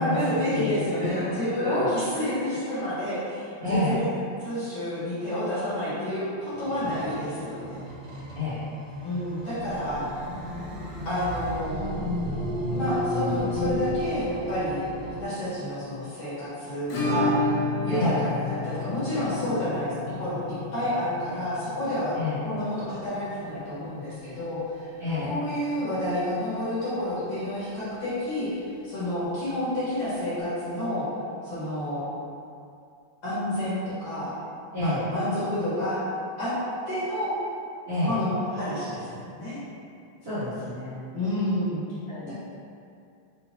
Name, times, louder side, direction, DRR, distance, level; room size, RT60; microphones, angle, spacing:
voice 1, 0.0-4.1 4.4-7.8 9.0-10.0 11.1-11.9 12.7-14.8 15.2-17.4 17.8-22.1 22.4-24.6 25.2-31.1 31.4-32.1 33.2-34.3 34.8-36.0 36.4-36.5 36.9-37.3 38.0-39.6 41.1-41.8 42.3-42.4, left 1 dB, 55° left, -13 dB, 2.4 m, -29 dB
voice 2, 1.6-1.9 3.6-4.0 8.3-8.6 9.9-10.1 17.9-18.2 22.1-22.4 25.0-25.3 34.7-35.1 37.9-38.1 40.2-41.0 42.1-42.3, left 2 dB, 45° right, -17 dB, 1.3 m, -28 dB
sound 1, 6.5-15.2, equal, 70° right, 1.2 m, -33 dB
Acoustic guitar / Strum, 16.9-25.5 25.8-25.9 26.1-26.2 26.6-26.7 28.8-28.9 30.0-30.1, left 2 dB, 75° left, 1.9 m, -32 dB
6.0 x 2.8 x 2.9 m, 2.4 s
omnidirectional pair, 3.3 m